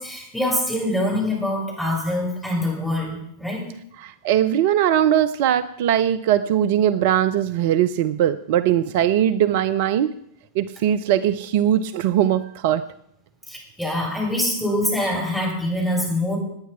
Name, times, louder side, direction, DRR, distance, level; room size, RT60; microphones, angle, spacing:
voice 1, 0.0-3.6 13.5-16.4, left 1 dB, 5° left, -3 dB, 7.0 m, -24 dB
voice 2, 4.0-10.1 10.6-12.8, right 10 dB, 50° right, 13 dB, 0.6 m, -20 dB
19.5 x 9.3 x 5.9 m, 0.74 s
figure-of-eight pair, 90°, 0 cm